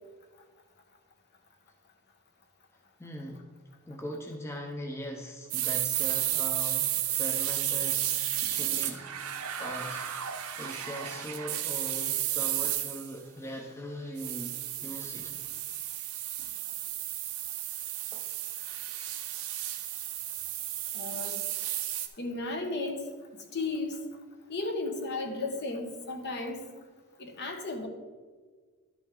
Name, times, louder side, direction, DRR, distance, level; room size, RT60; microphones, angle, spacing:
voice 1, 3.0-3.4 3.9-9.3 9.6-10.1 10.6-15.3 18.1-18.3 21.1-21.2, equal, 10° left, 1 dB, 0.7 m, -40 dB
sound 1, 5.5-13.1 14.2-22.1, right 12 dB, 70° right, 0.8 m, -33 dB
voice 2, 20.9-21.5 22.2-23.1 23.5-24.0 24.5-26.7 27.2-27.9, left 3 dB, 50° left, 4 dB, 1.1 m, -34 dB
11.5 x 6.1 x 3.7 m, 1.5 s
head